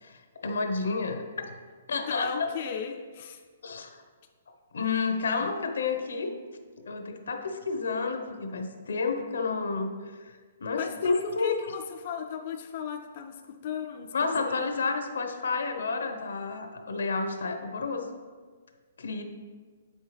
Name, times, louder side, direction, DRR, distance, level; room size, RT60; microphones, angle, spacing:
voice 1, 0.0-1.5 1.9-2.5 3.6-3.9 4.7-6.3 6.9-9.9 10.2-10.3 10.6-11.6 14.1-18.1 19.0-19.2, left 4 dB, 85° left, 6 dB, 0.8 m, -30 dB
voice 2, 1.9-3.4 10.8-14.9, left 6 dB, 35° left, 4 dB, 0.3 m, -36 dB
7.8 x 5.5 x 3.3 m, 1.6 s
hypercardioid pair, 175°, 0 cm